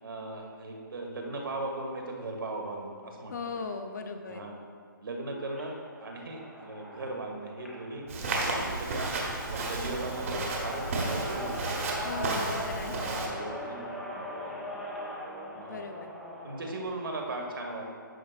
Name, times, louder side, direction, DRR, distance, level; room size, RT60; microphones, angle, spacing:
voice 1, 0.0-3.4 4.2-4.6 5.0-8.1 8.4-9.1 9.5-11.9 12.2-12.3 13.0-14.5 15.5-15.8 16.4-17.9, right 2 dB, 80° right, 1 dB, 1.5 m, -38 dB
voice 2, 3.3-4.4 12.0-13.0 15.7-16.1, left 4 dB, 55° left, 5 dB, 0.7 m, -38 dB
sound 1, 5.4-16.8, equal, ahead, 0.3 m, -40 dB
Walk footsteps, 8.1-13.3, right 2 dB, 40° right, 1.1 m, -33 dB
10.5 x 6.5 x 2.4 m, 2.1 s
hypercardioid pair, 165°, 11 cm